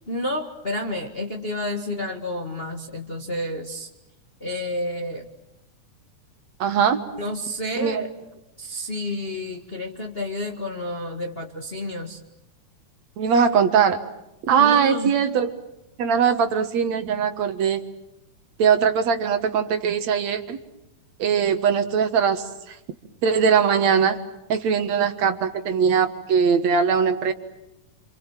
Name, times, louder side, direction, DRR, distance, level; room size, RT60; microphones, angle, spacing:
voice 1, 0.1-3.9 4.4-5.2 7.2-8.1 8.6-12.2 14.6-15.1, left 1 dB, 25° left, 3 dB, 1.5 m, -30 dB
voice 2, 6.6-7.0 7.8-8.0 13.2-14.0 14.5-15.5 16.0-17.8 18.6-20.6 21.2-22.8 23.2-24.2 24.5-27.3, right 7 dB, 65° right, 8 dB, 2.5 m, -21 dB
27.5 x 27.5 x 7.4 m, 0.89 s
omnidirectional pair, 3.6 m